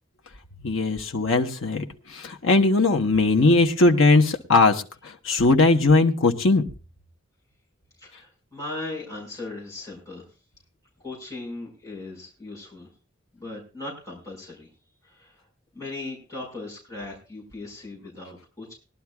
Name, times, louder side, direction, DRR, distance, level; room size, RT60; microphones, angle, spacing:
voice 1, 0.6-6.6, left 3 dB, 75° left, 3 dB, 1.1 m, -19 dB
voice 2, 8.0-10.3 11.0-12.9 13.3-14.7 15.0-15.4 15.7-18.7, left 2 dB, 15° left, -5 dB, 5.1 m, -38 dB
20.5 x 11.5 x 2.3 m, 0.33 s
head